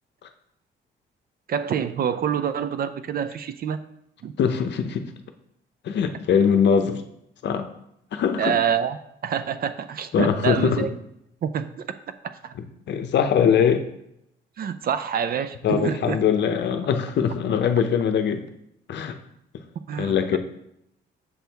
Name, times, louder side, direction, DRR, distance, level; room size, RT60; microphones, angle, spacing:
voice 1, 1.5-3.8 4.2-4.3 8.4-9.0 9.2-10.9 11.4-11.9 12.2-12.5 14.6-16.2 19.9-20.4, right 8 dB, 50° right, 11 dB, 0.4 m, -26 dB
voice 2, 4.4-5.1 5.8-7.0 7.4-7.7 8.1-8.5 10.1-10.9 12.6-13.9 15.6-18.4 18.9-19.2 20.0-20.4, left 7 dB, 60° left, 7 dB, 0.7 m, -22 dB
6.7 x 4.3 x 3.4 m, 0.79 s
cardioid pair, 90°, 20 cm